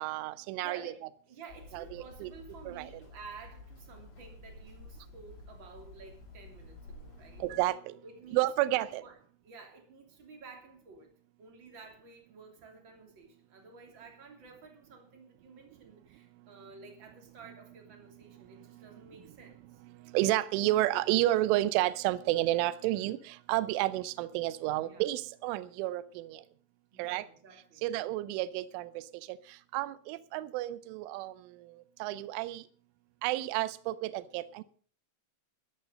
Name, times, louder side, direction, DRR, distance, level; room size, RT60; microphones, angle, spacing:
voice 1, 0.0-0.8 1.7-2.3 2.7-2.9 7.4-7.9 8.3-9.0 20.0-26.4 27.0-27.3 27.8-29.4 29.7-31.7 32.0-32.6 33.2-34.6, right 16 dB, 80° right, 15 dB, 3.1 m, -31 dB
voice 2, 0.6-7.4 8.0-8.5 8.7-9.2 9.4-11.1 11.4-19.8 24.8-25.0 26.9-27.8, right 4 dB, 30° right, 3 dB, 2.7 m, -52 dB
Hammer, 1.5-7.6, left 2 dB, 90° left, 7.6 m, -51 dB
14.0 x 12.0 x 5.2 m, 0.44 s
omnidirectional pair, 5.9 m